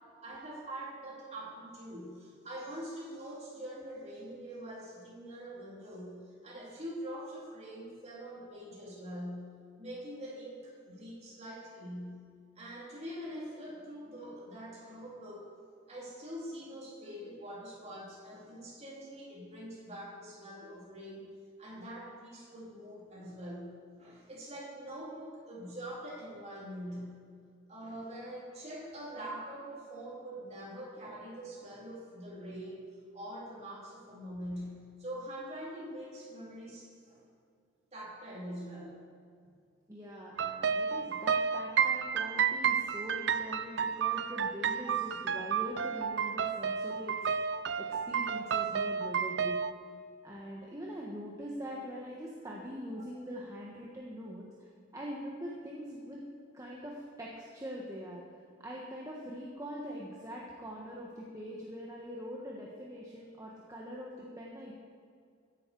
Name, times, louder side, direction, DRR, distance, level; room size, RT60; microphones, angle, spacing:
voice 1, 0.2-9.5 9.8-12.2 12.6-15.5 15.9-21.3 21.6-23.7 24.0-27.2 27.7-32.9 33.1-37.2 37.9-39.0 48.3-48.5, equal, 35° right, -5 dB, 3.8 m, -44 dB
voice 2, 39.9-47.1 47.8-49.6 50.2-56.2 56.5-58.2 58.6-64.7, equal, 15° right, -3 dB, 1.3 m, -43 dB
sound 1, 40.4-49.7, right 7 dB, 65° right, 0.5 m, -31 dB
15.0 x 10.5 x 4.7 m, 2.3 s
head